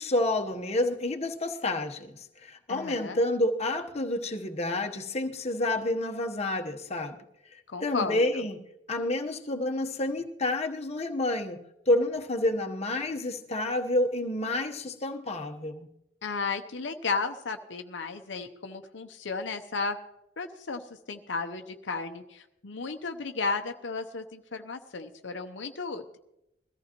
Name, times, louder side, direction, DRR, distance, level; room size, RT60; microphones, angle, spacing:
voice 1, 0.0-7.2 7.5-8.6 8.9-11.6 11.9-15.9, left 1 dB, 35° left, 1.0 m, -29 dB
voice 2, 2.7-3.2 7.7-8.2 16.2-20.0 20.4-20.8 21.1-26.0, left 4 dB, 80° left, 0.8 m, -34 dB
21.5 x 14.5 x 3.0 m
head